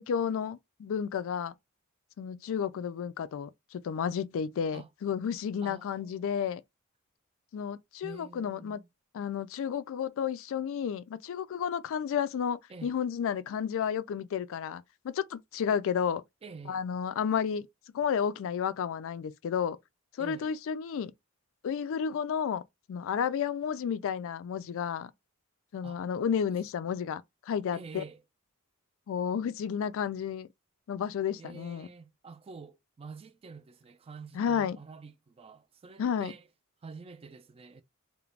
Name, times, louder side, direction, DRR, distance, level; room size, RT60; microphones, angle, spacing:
voice 1, 0.0-1.5 2.2-6.6 7.5-8.8 9.1-16.2 16.7-17.7 17.9-19.8 20.2-21.1 21.6-22.6 22.9-25.1 25.7-28.0 29.1-30.5 30.9-31.9 34.3-34.8 36.0-36.3, left 7 dB, 65° left, 0.3 m, -32 dB
voice 2, 5.6-6.6 8.0-8.9 12.7-13.0 16.4-16.8 20.2-20.6 25.8-26.0 27.7-28.2 31.4-36.5 36.8-37.8, right 4 dB, 25° right, 0.3 m, -48 dB
2.4 x 2.1 x 3.1 m
head